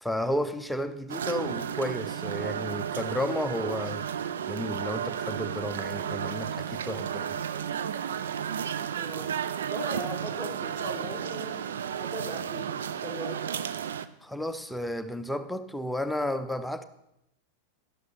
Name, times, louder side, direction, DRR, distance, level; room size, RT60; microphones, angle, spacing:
voice 1, 0.0-4.1 4.5-7.4 14.2-16.8, left 1 dB, ahead, 0.6 m, -32 dB
sound 1, 1.1-14.1, right 8 dB, 65° right, 0.5 m, -33 dB
voice 2, 8.9-9.3 9.7-11.6 12.0-13.6, right 1 dB, 20° right, 2.8 m, -39 dB
12.0 x 11.5 x 4.1 m
figure-of-eight pair, 90°, 0 cm